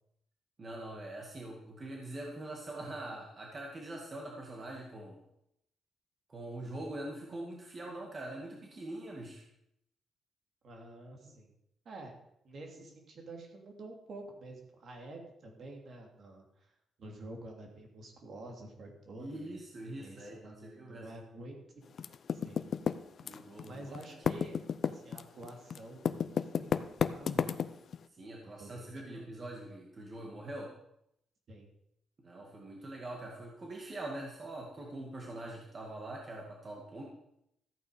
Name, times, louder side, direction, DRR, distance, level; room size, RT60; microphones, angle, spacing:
voice 1, 0.6-5.2 6.3-9.4 19.2-21.1 23.2-24.0 27.3-27.6 28.2-30.7 32.2-37.0, right 1 dB, 30° right, -1 dB, 2.0 m, -43 dB
voice 2, 10.6-11.5 11.8-12.2 12.4-16.7 17.0-21.8 22.3-22.6 23.6-24.6 24.9-27.7 28.4-29.3 31.5-31.7, right 2 dB, 50° right, 2 dB, 2.9 m, -49 dB
Typing, 22.0-23.7 23.9-28.0, left 7 dB, 50° left, 0.6 m, -31 dB
14.0 x 8.9 x 5.1 m, 0.77 s
cardioid pair, 140°, 0 cm